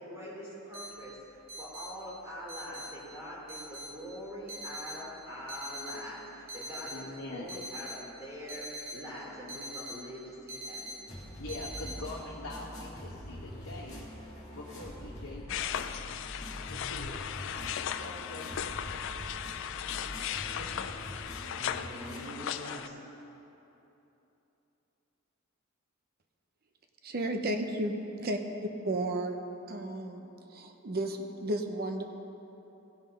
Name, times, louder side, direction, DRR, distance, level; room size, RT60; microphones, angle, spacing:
voice 1, 0.0-11.0 21.6-22.9, equal, 15° right, -7 dB, 2.8 m, -43 dB
sound 1, 0.7-11.9, equal, 75° right, 2.1 m, -43 dB
voice 2, 6.9-7.5 11.4-15.8 16.6-18.8 20.5-21.2, left 2 dB, 85° left, -4 dB, 1.1 m, -44 dB
sound 2, 11.1-22.2, equal, 35° left, 2.2 m, -44 dB
sound 3, 15.5-22.9, left 9 dB, 60° left, 0.4 m, -37 dB
voice 3, 27.0-28.4 28.8-29.3 29.7-32.0, right 1 dB, 45° right, 5 dB, 0.7 m, -33 dB
16.0 x 5.6 x 5.2 m, 3.0 s
head